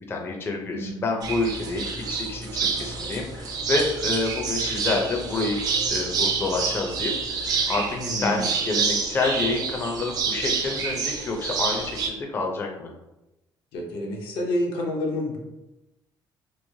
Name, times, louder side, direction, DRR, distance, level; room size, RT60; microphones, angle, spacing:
voice 1, 0.1-5.6 5.9-12.9, left 3 dB, 30° left, 1 dB, 0.4 m, -28 dB
sound 1, 1.2-12.1, right 5 dB, 50° right, 0.4 m, -28 dB
voice 2, 7.9-8.5 13.7-15.4, left 1 dB, 85° left, -1 dB, 0.7 m, -29 dB
3.0 x 2.0 x 2.7 m, 0.95 s
cardioid pair, 125°, 8 cm